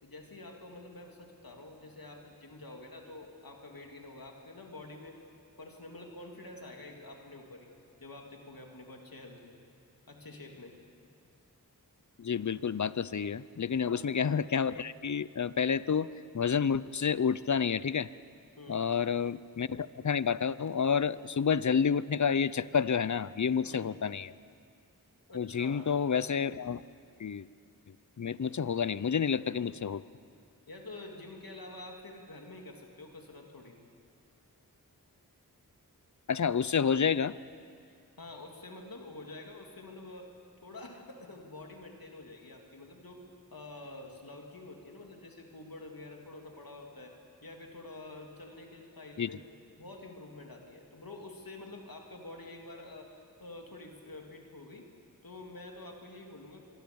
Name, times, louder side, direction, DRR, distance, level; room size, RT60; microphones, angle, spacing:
voice 1, 0.0-5.2 5.6-7.7 8.0-9.6 10.1-10.8 13.8-14.1 18.6-18.9 23.6-23.9 25.3-25.9 30.7-33.8 38.2-40.3 40.6-43.2 43.5-47.1 47.4-49.4 49.8-53.1 53.4-54.9 55.2-56.6, left 2 dB, 70° left, 2 dB, 3.1 m, -47 dB
voice 2, 12.2-16.1 16.3-18.1 18.7-24.3 25.3-26.8 27.2-27.5 28.2-30.0 36.3-37.3 49.2-49.3, left 6 dB, 50° left, 17 dB, 0.6 m, -29 dB
25.5 x 22.5 x 7.1 m, 2.4 s
wide cardioid pair, 55°, 36 cm